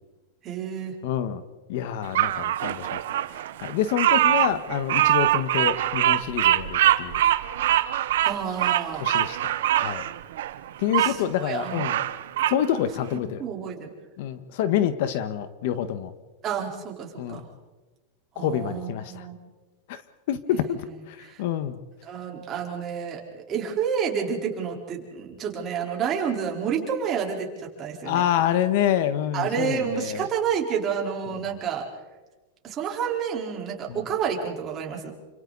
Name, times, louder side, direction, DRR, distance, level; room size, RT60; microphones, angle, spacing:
voice 1, 0.4-0.9 8.2-9.0 11.0-11.8 13.4-13.9 16.4-17.5 18.4-19.4 20.6-20.9 21.2-21.4 22.0-28.2 29.3-31.9 32.6-35.1, right 7 dB, 25° right, 0 dB, 4.3 m, -29 dB
voice 2, 1.0-1.4 1.7-3.0 3.6-7.2 9.0-9.5 9.8-10.0 10.8-12.0 12.5-13.4 14.2-16.1 17.2-17.4 18.3-19.3 19.9-20.0 20.3-21.8 28.0-30.2 33.9-34.0, left 10 dB, 60° left, 11 dB, 1.5 m, -27 dB
Bird vocalization bird call bird song, 2.1-11.1 11.6-12.6, right 12 dB, 80° right, 1.1 m, -23 dB
29.0 x 26.5 x 4.2 m, 1.2 s
supercardioid pair, 155°, 0 cm